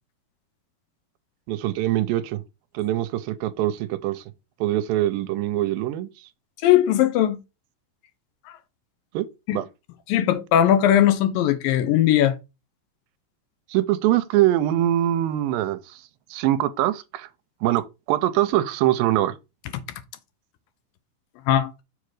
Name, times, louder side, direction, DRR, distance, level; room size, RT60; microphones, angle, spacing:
voice 1, 1.5-2.4 2.7-4.2 4.6-6.1 9.1-9.3 9.5-9.7 13.7-15.8 16.3-17.3 17.6-17.8 18.1-19.3, right 14 dB, 85° right, 2.3 m, -23 dB
voice 2, 6.6-7.4 9.5-9.6 10.1-12.4 21.5-21.7, left 11 dB, 80° left, 2.4 m, -19 dB
7.0 x 3.8 x 4.7 m
omnidirectional pair, 4.2 m